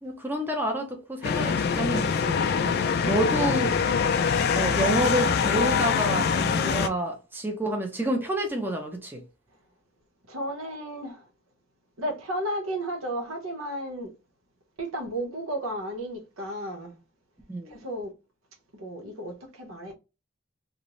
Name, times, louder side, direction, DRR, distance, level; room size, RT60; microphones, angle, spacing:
voice 1, 0.0-2.4 3.0-3.7 4.5-9.2 17.5-17.8, right 1 dB, 10° right, 0.5 m, -28 dB
sound 1, 1.2-6.9, left 6 dB, 50° left, 0.3 m, -24 dB
voice 2, 10.3-11.2 12.0-14.1 14.8-17.0 17.7-18.1 18.7-19.9, right 1 dB, 90° right, 0.9 m, -33 dB
2.6 x 2.0 x 2.9 m
head